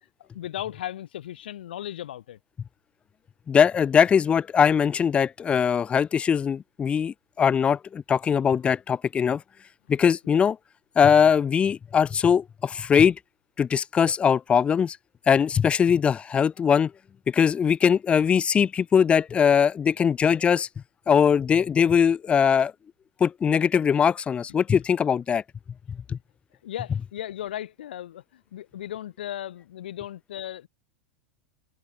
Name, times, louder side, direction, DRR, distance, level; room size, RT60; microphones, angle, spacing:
voice 1, 0.3-2.4 10.3-10.5 26.6-30.7, left 12 dB, 75° left, 5.5 m, -36 dB
voice 2, 3.5-9.4 9.9-10.6 11.0-13.2 13.6-15.0 15.3-16.9 17.3-20.7 21.1-22.7 23.2-25.4 26.1-26.2, left 7 dB, 20° left, 0.4 m, -21 dB
hypercardioid pair, 105°, 5 cm